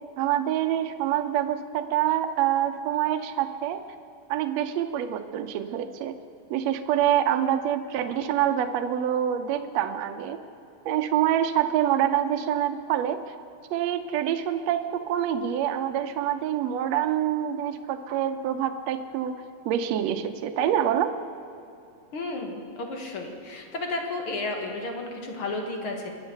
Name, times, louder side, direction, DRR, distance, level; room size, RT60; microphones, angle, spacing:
voice 1, 0.2-3.8 4.3-6.2 6.5-10.4 10.9-13.3 13.7-19.4 19.7-21.1, right 10 dB, 70° right, 6 dB, 1.8 m, -26 dB
voice 2, 22.1-26.1, left 2 dB, 50° left, 2 dB, 2.1 m, -32 dB
23.0 x 8.2 x 6.6 m, 2.7 s
omnidirectional pair, 3.4 m